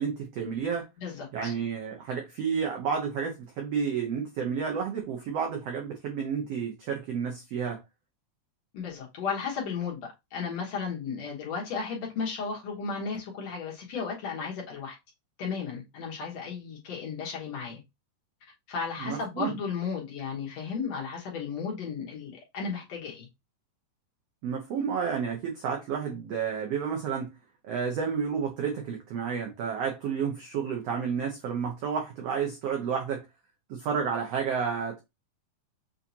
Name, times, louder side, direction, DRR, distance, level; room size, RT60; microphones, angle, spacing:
voice 1, 0.0-0.9 1.3-7.8 19.0-19.5 24.4-27.3 27.6-33.2 33.7-35.0, right 6 dB, 85° right, 1.4 m, -31 dB
voice 2, 1.0-1.5 8.7-15.0 15.4-17.8 18.7-23.3, left 5 dB, 60° left, 2.1 m, -34 dB
6.8 x 2.8 x 2.7 m
omnidirectional pair, 4.0 m